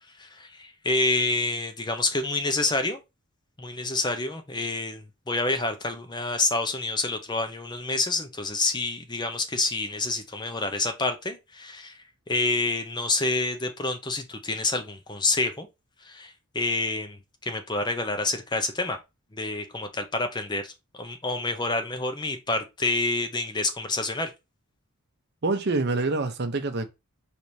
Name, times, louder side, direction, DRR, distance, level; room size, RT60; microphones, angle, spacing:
voice 1, 0.2-3.0 3.6-12.0 12.3-15.7 16.0-19.0 19.3-20.7 21.0-24.3, left 2 dB, 20° left, 0.6 m, -28 dB
voice 2, 25.4-26.9, right 3 dB, 50° right, 0.7 m, -26 dB
4.7 x 3.4 x 2.7 m
head